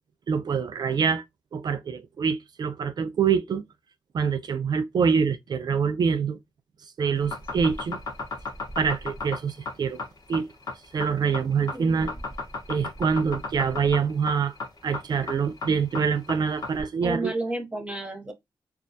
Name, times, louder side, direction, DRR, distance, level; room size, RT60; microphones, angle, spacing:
voice 1, 0.3-1.2 1.5-3.6 4.1-6.4 7.0-8.0 8.8-10.0 10.3-10.5 10.9-12.1 12.7-14.5 14.8-17.3, right 6 dB, 55° right, 0.3 m, -25 dB
sound 1, 7.2-16.8, left 3 dB, 50° left, 0.9 m, -34 dB
voice 2, 11.7-12.1 17.0-18.3, right 2 dB, 15° right, 0.7 m, -32 dB
2.3 x 2.1 x 2.6 m
cardioid pair, 80°, 8 cm